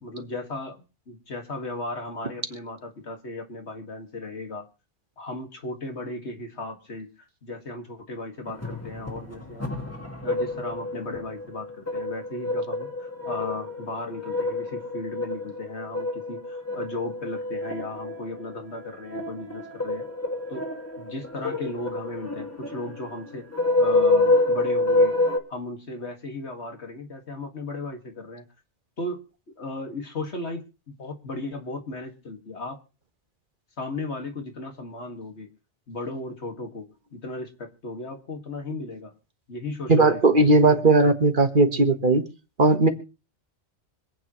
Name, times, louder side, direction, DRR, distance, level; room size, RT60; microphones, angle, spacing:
voice 1, 0.0-4.7 5.2-7.1 7.4-9.7 10.2-20.0 20.5-20.7 21.0-23.4 23.8-25.2 25.5-28.4 29.0-29.2 29.6-32.8 33.8-35.5 35.9-39.1 39.5-40.6, left 2 dB, 75° left, 4 dB, 2.3 m, -36 dB
sound 1, 8.5-25.4, left 2 dB, 15° left, 1.8 m, -28 dB
voice 2, 39.9-42.2 42.6-42.9, right 2 dB, 50° right, 7 dB, 1.6 m, -18 dB
25.5 x 8.7 x 3.1 m, 0.33 s
omnidirectional pair, 1.2 m